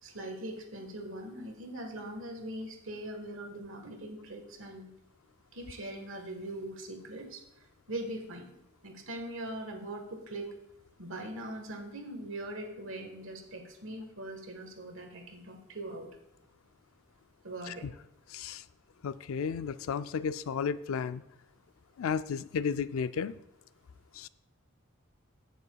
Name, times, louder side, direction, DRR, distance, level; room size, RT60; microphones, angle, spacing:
voice 1, 0.0-4.9 5.5-8.5 8.8-10.5 11.0-16.1 17.4-17.9, right 1 dB, 70° right, 4 dB, 1.5 m, -41 dB
voice 2, 18.3-18.6 19.0-21.2 22.0-23.3 24.1-24.3, left 6 dB, 80° left, 14 dB, 0.4 m, -33 dB
16.5 x 6.8 x 2.3 m, 0.85 s
head